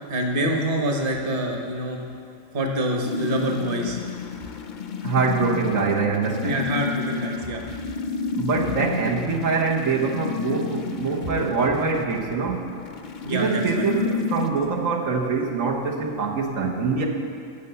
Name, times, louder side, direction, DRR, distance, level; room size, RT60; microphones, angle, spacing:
voice 1, 0.1-2.0 2.5-4.0 6.4-7.6 13.2-13.9, right 1 dB, 40° right, 2 dB, 1.4 m, -26 dB
sound 1, 3.0-14.5, left 5 dB, 50° left, 0.6 m, -31 dB
voice 2, 5.0-6.7 8.4-12.6 13.3-17.1, right 4 dB, 80° right, -1 dB, 1.5 m, -24 dB
15.5 x 6.7 x 6.9 m, 2.4 s
omnidirectional pair, 1.4 m